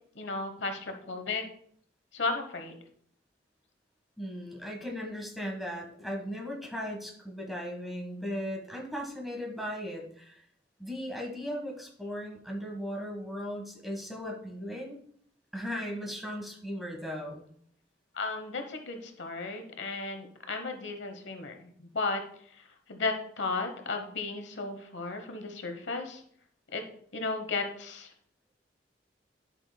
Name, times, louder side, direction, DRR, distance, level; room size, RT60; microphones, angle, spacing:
voice 1, 0.1-1.4 2.1-2.8 18.1-22.2 22.5-26.2 26.7-26.8 27.1-28.1, left 3 dB, 85° left, 6 dB, 1.0 m, -34 dB
voice 2, 4.2-10.4 10.8-15.0 15.5-17.4, equal, ahead, -1 dB, 1.5 m, -37 dB
11.0 x 5.9 x 2.2 m, 0.62 s
head